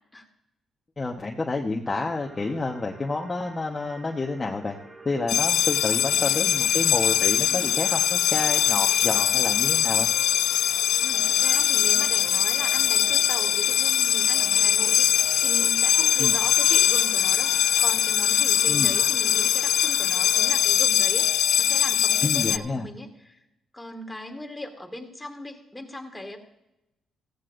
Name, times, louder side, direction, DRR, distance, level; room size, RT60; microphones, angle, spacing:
voice 1, 1.0-4.8 5.0-10.1 16.2-16.3 18.7-18.9 22.2-22.9, left 3 dB, 25° left, 1 dB, 1.1 m, -29 dB
sound 1, 1.8-20.5, right 2 dB, 30° right, 5.8 m, -46 dB
sound 2, 5.3-22.6, left 10 dB, 80° left, 0.4 m, -22 dB
sound 3, 9.2-14.0 14.3-17.0 17.4-20.0 20.3-20.9 21.2-22.9, right 4 dB, 75° right, 2.7 m, -49 dB
voice 2, 11.0-17.5 17.8-23.4 23.7-26.4, left 1 dB, 10° left, 2 dB, 2.3 m, -38 dB
15.5 x 14.5 x 2.6 m, 0.89 s
cardioid pair, 90°, 0 cm